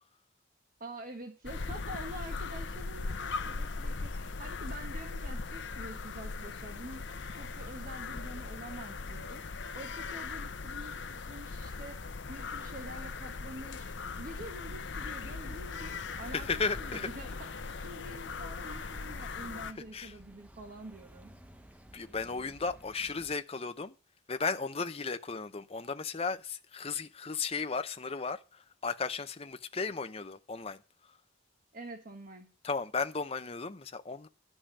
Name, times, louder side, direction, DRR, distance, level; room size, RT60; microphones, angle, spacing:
voice 1, 0.8-21.3 31.7-32.5, right 1 dB, 45° right, 1.2 m, -47 dB
sound 1, 1.4-19.7, left 4 dB, 65° left, 0.7 m, -39 dB
sound 2, 14.8-23.4, right 1 dB, 5° right, 0.7 m, -56 dB
voice 2, 16.3-17.1 19.9-20.1 21.9-23.9 24.3-30.8 32.6-34.3, left 4 dB, 30° left, 0.7 m, -35 dB
11.5 x 5.5 x 8.5 m
head